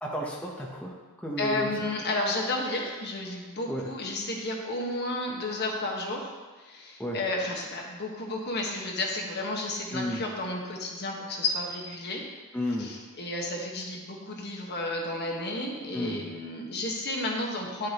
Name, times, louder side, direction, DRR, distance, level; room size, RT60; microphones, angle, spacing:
voice 1, 0.0-1.9 3.7-3.8 7.0-7.2 9.9-10.2 12.5-12.9 15.9-16.2, equal, 5° left, -3 dB, 0.7 m, -32 dB
voice 2, 1.4-12.2 12.8-17.9, left 2 dB, 50° left, -1 dB, 1.2 m, -32 dB
10.5 x 6.5 x 2.9 m, 1.3 s
head